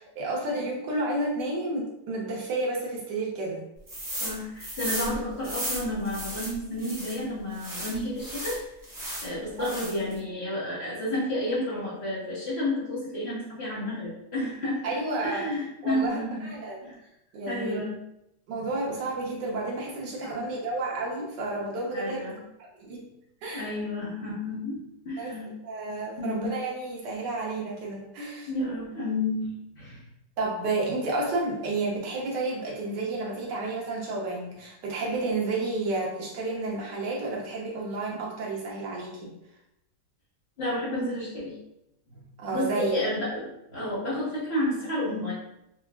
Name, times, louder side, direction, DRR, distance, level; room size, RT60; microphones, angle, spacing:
voice 1, 0.0-3.6 9.6-9.7 14.8-15.5 15.8-16.8 17.3-17.8 18.5-22.3 22.7-23.1 23.4-23.7 25.2-25.3 25.6-28.5 30.4-39.3 42.4-43.1, right 2 dB, 85° right, -2 dB, 1.5 m, -31 dB
sound 1, 3.9-4.3 4.6-7.2 7.6-9.3 9.6-10.1, right 1 dB, 25° right, 0.4 m, -35 dB
voice 2, 4.2-8.6 9.2-14.8 15.2-16.5 16.8-17.0 17.5-18.0 20.2-20.4 21.9-22.4 23.5-25.5 26.2-26.5 28.5-30.0 40.6-41.5 42.1-42.2 42.5-45.3, left 1 dB, 40° left, -8 dB, 1.3 m, -31 dB
4.8 x 2.4 x 2.3 m, 0.83 s
omnidirectional pair, 1.8 m